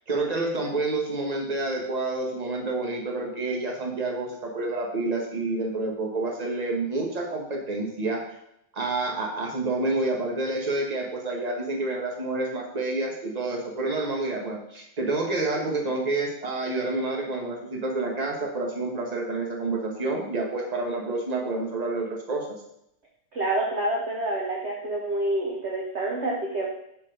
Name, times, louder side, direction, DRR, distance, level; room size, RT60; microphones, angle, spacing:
voice 1, 0.1-8.2 8.7-22.6, right 2 dB, 25° right, 0 dB, 1.0 m, -28 dB
voice 2, 23.3-26.7, right 1 dB, 50° right, -1 dB, 0.8 m, -27 dB
6.2 x 5.3 x 5.1 m, 0.75 s
omnidirectional pair, 2.4 m